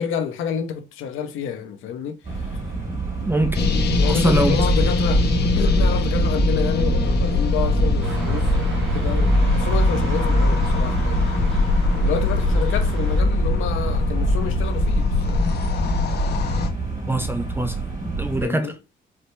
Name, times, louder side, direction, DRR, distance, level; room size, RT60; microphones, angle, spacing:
voice 1, 0.0-2.6 4.0-11.2 12.0-15.5 18.4-18.7, left 8 dB, 90° left, 0.9 m, -29 dB
sound 1, 2.2-18.5, right 4 dB, 45° right, 2.7 m, -28 dB
voice 2, 3.2-3.6 4.0-4.6 17.1-18.7, right 1 dB, 10° right, 0.6 m, -23 dB
sound 2, 3.5-16.7, left 2 dB, 55° left, 1.0 m, -21 dB
sound 3, 8.0-13.2, right 3 dB, 75° right, 1.9 m, -36 dB
4.8 x 2.9 x 3.3 m
cardioid pair, 90°, 20 cm